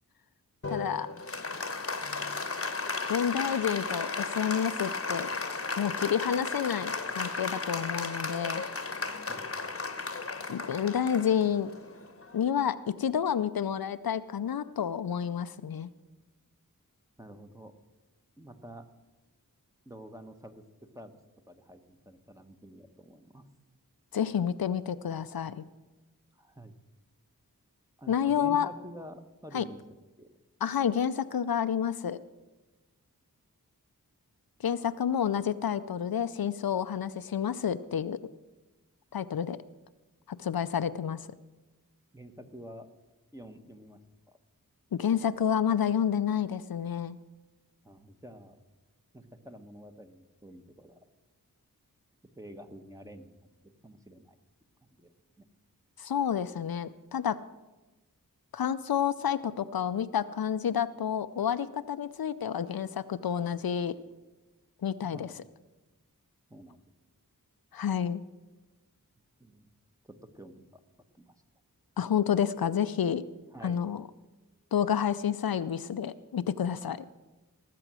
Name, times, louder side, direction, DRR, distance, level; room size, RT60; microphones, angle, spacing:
Applause, 0.6-12.5, left 3 dB, 40° left, 1.0 m, -35 dB
voice 1, 0.7-1.1 3.1-5.3 5.8-8.6 10.5-11.7 12.3-15.9 24.1-25.6 28.1-28.7 29.5-29.6 30.6-32.2 34.6-38.2 39.1-39.6 40.3-41.3 44.9-47.2 56.0-57.4 58.5-64.0 64.8-65.3 67.7-68.2 72.0-73.2 73.6-74.0 74.7-77.1, left 8 dB, 80° left, 13 dB, 0.5 m, -29 dB
voice 2, 17.2-17.7 18.4-18.9 19.8-20.6 20.9-21.2 21.5-23.4 26.3-26.7 28.0-29.8 30.2-30.3 42.1-42.9 43.3-44.0 44.3-44.4 47.8-48.6 49.1-51.0 52.4-53.3 53.6-54.4 54.8-55.1 55.4-55.5 65.1-65.4 66.5-66.8 69.4-69.7 70.0-70.8 71.1-71.4 73.5-73.8, equal, 10° right, 7 dB, 1.1 m, -48 dB
18.0 x 7.7 x 6.2 m, 1.1 s
wide cardioid pair, 60°, 35 cm